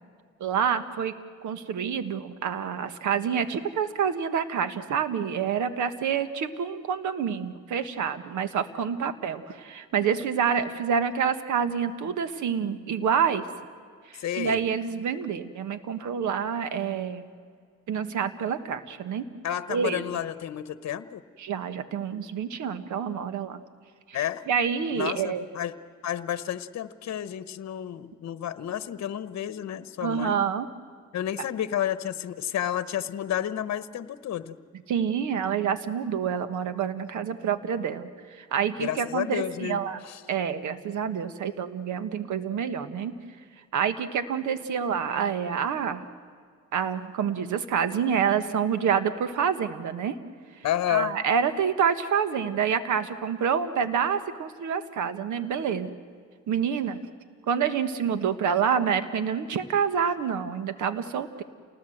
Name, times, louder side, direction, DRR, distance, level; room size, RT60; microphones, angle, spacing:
voice 1, 0.4-1.1 1.4-13.5 14.1-17.3 17.9-19.2 19.7-20.0 21.4-23.6 24.1-24.2 24.5-25.4 30.0-30.7 34.9-40.0 40.3-43.1 43.7-46.0 46.7-50.1 50.9-55.9 56.5-57.0 57.5-61.4, right 7 dB, 75° right, 11 dB, 1.5 m, -27 dB
voice 2, 14.2-14.6 19.4-21.2 24.1-24.4 24.9-25.7 26.0-30.4 31.1-34.6 38.8-40.2 50.6-51.1, left 11 dB, 60° left, 13 dB, 1.1 m, -31 dB
28.5 x 19.5 x 7.9 m, 2.1 s
cardioid pair, 90°, 30 cm